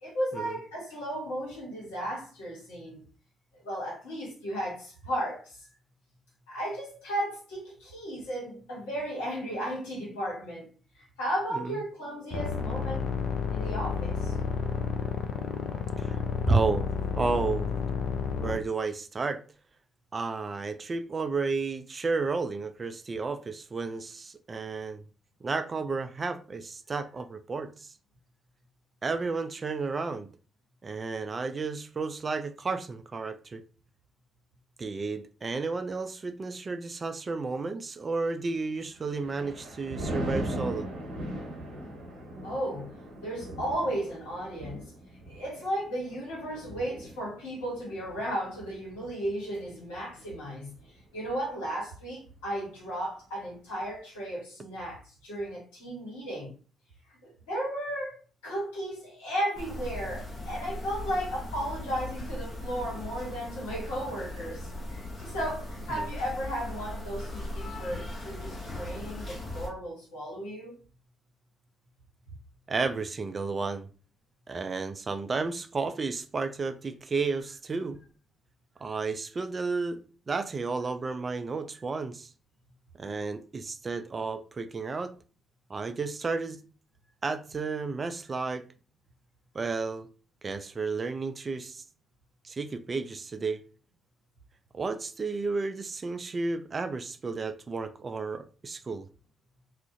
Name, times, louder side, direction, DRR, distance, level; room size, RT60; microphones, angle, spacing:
voice 1, 0.0-3.0 3.5-5.6 6.5-13.1 13.5-14.3 42.4-42.9 43.2-44.9 45.3-50.7 51.1-56.5 57.2-58.2 58.4-70.7, equal, 80° left, 1.0 m, -35 dB
sound 1, 12.3-18.6, left 6 dB, 65° left, 0.4 m, -31 dB
voice 2, 16.5-16.9 17.2-17.7 18.4-19.4 20.1-25.0 25.4-27.9 29.0-30.3 30.8-33.6 34.8-40.9 65.9-66.1 72.7-73.9 74.5-78.0 78.8-80.0 80.3-82.3 83.0-85.1 85.7-86.6 87.2-88.6 89.5-90.1 90.4-91.8 92.4-93.6 94.7-99.1, right 4 dB, 40° right, 0.3 m, -32 dB
Thunder, 38.8-50.3 50.8-51.1, equal, 75° right, 0.8 m, -39 dB
sound 2, 59.6-69.7, left 1 dB, 40° left, 0.7 m, -38 dB
2.4 x 2.0 x 2.6 m
hypercardioid pair, 40°, 0 cm